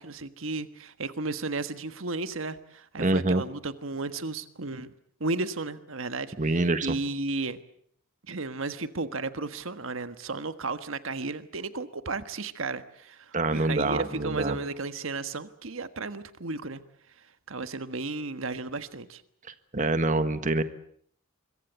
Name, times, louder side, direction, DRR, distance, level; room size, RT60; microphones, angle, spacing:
voice 1, 0.0-4.9 5.2-6.3 6.8-7.6 8.3-16.8 17.5-19.2, right 3 dB, 75° right, 11 dB, 1.4 m, -34 dB
voice 2, 3.0-3.4 6.4-6.9 13.3-14.6 19.4-20.6, right 2 dB, 40° right, 11 dB, 1.5 m, -26 dB
25.0 x 23.0 x 8.2 m, 0.64 s
head